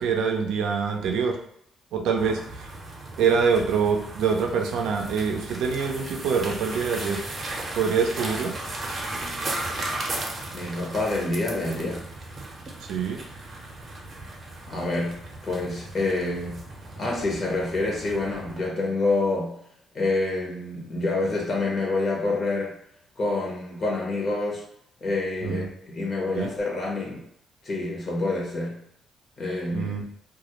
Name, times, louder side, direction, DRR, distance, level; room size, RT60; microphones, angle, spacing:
voice 1, 0.0-1.3 1.9-2.7 3.2-7.2 7.7-8.5 12.9-13.2 25.4-25.7 26.3-26.5 29.7-30.0, right 6 dB, 85° right, 3 dB, 0.4 m, -25 dB
sound 1, 2.2-18.7, right 2 dB, 40° right, 0.6 m, -36 dB
voice 2, 10.5-12.0 14.7-15.2 15.4-16.6 17.0-19.5 19.9-22.7 23.2-24.6 25.0-27.2 27.6-28.8 29.4-29.9, left 2 dB, 45° left, -2 dB, 0.7 m, -27 dB
2.3 x 2.0 x 2.9 m, 0.72 s
cardioid pair, 90°, 0 cm